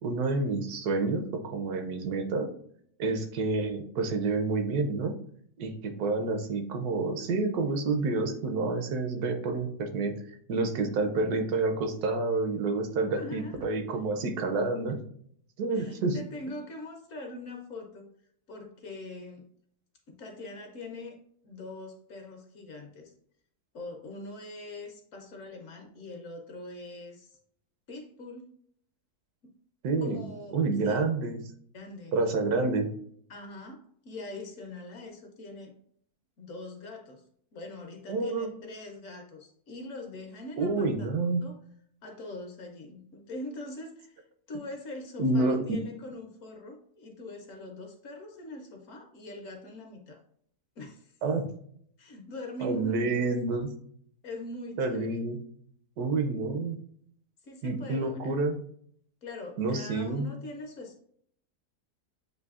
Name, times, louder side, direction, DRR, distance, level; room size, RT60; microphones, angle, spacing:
voice 1, 0.0-2.5 3.0-5.1 5.6-10.2 10.5-15.0 15.6-16.2 29.8-30.2 30.5-31.4 32.1-32.9 38.1-38.5 40.6-41.4 45.2-45.6 51.2-51.4 52.6-53.7 54.8-55.4 56.0-56.8 57.6-58.6 59.6-60.3, right 3 dB, 75° right, 6 dB, 1.1 m, -28 dB
voice 2, 13.1-13.7 15.7-18.1 18.5-19.4 20.1-21.2 21.4-23.1 23.7-27.4 27.9-28.5 29.4-29.5 30.0-30.6 30.8-31.1 31.7-32.1 33.3-35.7 36.4-37.2 37.5-41.1 41.4-41.6 42.0-50.2 50.8-51.1 52.0-53.3 54.2-55.2 57.4-58.4 59.2-61.0, left 2 dB, 60° left, 3 dB, 1.0 m, -42 dB
7.8 x 2.6 x 2.4 m, 0.64 s
omnidirectional pair, 1.7 m